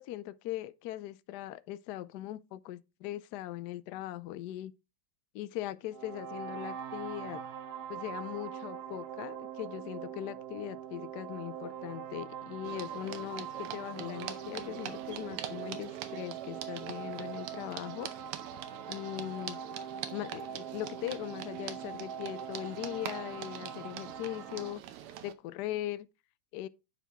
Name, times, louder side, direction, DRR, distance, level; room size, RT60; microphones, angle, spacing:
voice 1, 0.0-4.7 5.3-7.4 7.9-18.1 18.9-19.6 20.1-24.8 25.2-26.1 26.5-26.7, left 14 dB, 85° left, 0.9 m, -40 dB
sound 1, 5.9-24.7, right 8 dB, 65° right, 1.0 m, -43 dB
sound 2, 12.6-25.3, right 10 dB, 85° right, 1.7 m, -44 dB
10.5 x 4.6 x 3.5 m
omnidirectional pair, 2.4 m